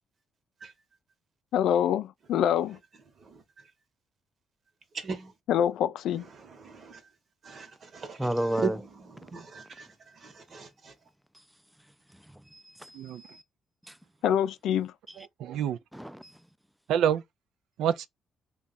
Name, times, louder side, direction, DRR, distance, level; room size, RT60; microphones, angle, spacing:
voice 1, 1.5-2.8 5.5-6.3 14.2-14.9, left 9 dB, 80° left, 0.3 m, -25 dB
voice 2, 3.2-3.7 4.9-5.3 6.2-7.0 7.4-10.9, right 5 dB, 50° right, 1.0 m, -39 dB
voice 3, 8.2-8.8 12.3-13.4 13.9-14.0 15.9-16.4, right 1 dB, 5° right, 0.4 m, -32 dB
voice 4, 15.2-15.8 16.9-17.2 17.8-18.1, right 9 dB, 80° right, 0.4 m, -27 dB
3.4 x 2.3 x 4.0 m
cardioid pair, 90°, 0 cm